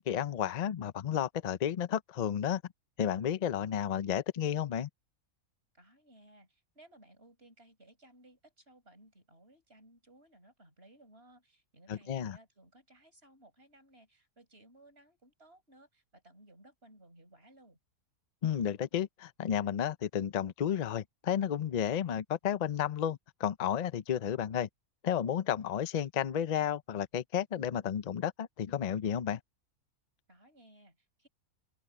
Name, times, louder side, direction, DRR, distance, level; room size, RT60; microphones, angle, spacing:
voice 1, 0.0-2.6 3.0-4.9 11.9-12.4 18.4-24.7 25.0-29.4, left 9 dB, 80° left, 0.3 m, -32 dB
voice 2, 5.7-17.8 30.3-31.3, right 1 dB, 40° right, 7.5 m, -60 dB
open air
omnidirectional pair, 1.6 m